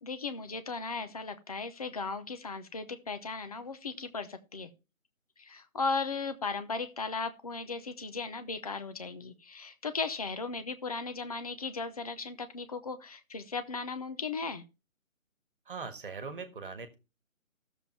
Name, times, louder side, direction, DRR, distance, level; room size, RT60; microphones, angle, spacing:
voice 1, 0.0-4.7 5.4-14.6, left 4 dB, 30° left, 10 dB, 0.8 m, -36 dB
voice 2, 15.7-16.9, right 4 dB, 40° right, 10 dB, 1.6 m, -40 dB
13.0 x 7.2 x 4.3 m, 0.31 s
figure-of-eight pair, 145°, 41 cm